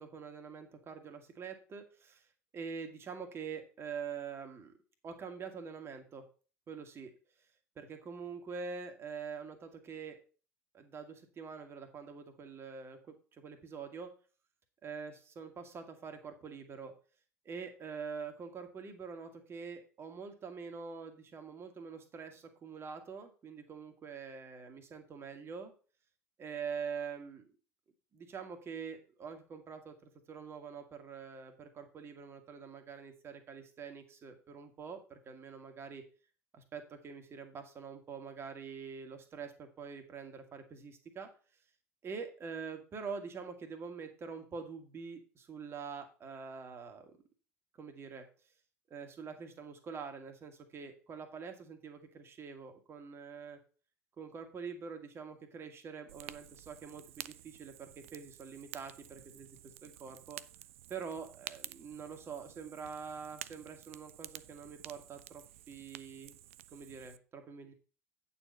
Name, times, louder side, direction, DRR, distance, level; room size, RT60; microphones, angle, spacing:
voice 1, 0.0-2.3 2.5-4.7 5.0-6.2 6.7-7.1 7.7-10.2 10.7-14.1 14.8-16.9 17.4-25.7 26.4-27.5 28.1-36.0 36.5-41.3 42.0-47.2 47.7-48.2 48.9-53.6 54.2-60.4 60.9-66.3 66.7-67.7, right 6 dB, 30° right, 6 dB, 1.7 m, -45 dB
Fire, 56.1-67.2, right 14 dB, 65° right, 0.3 m, -51 dB
8.8 x 4.4 x 6.3 m, 0.37 s
figure-of-eight pair, 70°, 8 cm